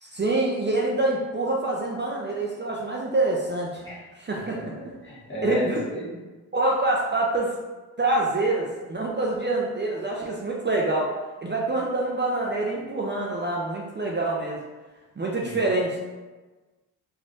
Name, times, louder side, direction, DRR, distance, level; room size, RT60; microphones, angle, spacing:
voice 1, 0.0-3.8 4.2-4.7 5.4-5.8 6.5-7.5 8.0-11.1 11.4-14.6 15.2-16.0, right 2 dB, 25° right, -2 dB, 0.5 m, -26 dB
voice 2, 4.5-6.2 15.4-15.6, equal, 30° left, -8 dB, 1.2 m, -33 dB
3.4 x 2.3 x 2.6 m, 1.3 s
supercardioid pair, 45°, 40 cm